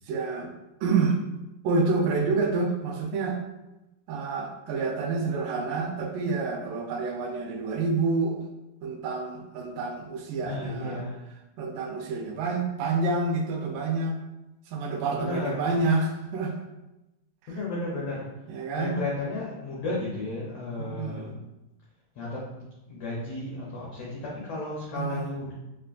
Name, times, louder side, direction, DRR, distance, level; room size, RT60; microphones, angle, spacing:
voice 1, 0.0-0.5 0.8-1.2 1.6-3.4 4.1-8.5 8.8-11.0 11.6-14.2 14.7-16.5 18.5-19.0 20.8-21.4 25.0-25.3, right 3 dB, 85° right, 3 dB, 2.2 m, -28 dB
voice 2, 10.4-11.2 15.2-15.6 17.5-18.3 18.8-21.4 22.1-25.5, left 2 dB, 85° left, -5 dB, 1.4 m, -33 dB
5.3 x 2.2 x 2.4 m, 0.99 s
omnidirectional pair, 3.7 m